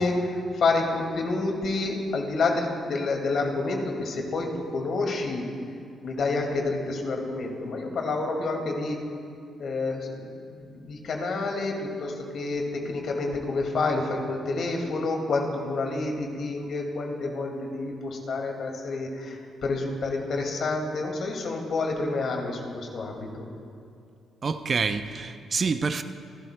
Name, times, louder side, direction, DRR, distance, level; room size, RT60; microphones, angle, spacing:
voice 1, 0.0-5.4 6.0-9.0 9.6-23.5, left 3 dB, 65° left, 2 dB, 2.1 m, -29 dB
voice 2, 24.4-26.0, right 5 dB, 45° right, 10 dB, 0.6 m, -27 dB
27.5 x 12.5 x 2.2 m, 2.5 s
cardioid pair, 75°, 0 cm